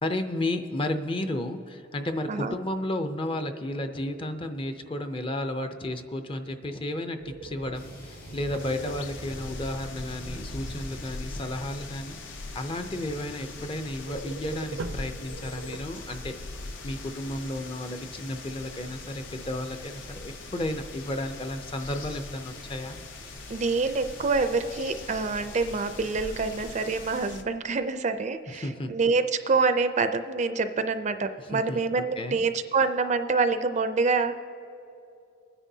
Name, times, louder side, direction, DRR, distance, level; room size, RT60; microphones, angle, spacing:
voice 1, 0.0-16.4 16.8-23.0 28.5-28.9 31.5-31.8 32.2-32.4, left 1 dB, 25° left, 7 dB, 0.5 m, -33 dB
sound 1, 7.2-9.5 14.0-16.3, right 3 dB, 80° right, 0.6 m, -41 dB
sound 2, 7.7-27.2, equal, 85° left, 3.2 m, -46 dB
sound 3, 8.6-27.4, left 3 dB, 70° left, 0.7 m, -42 dB
voice 2, 23.5-34.4, right 4 dB, 35° right, 9 dB, 0.4 m, -26 dB
23.0 x 9.9 x 2.7 m, 2.7 s
head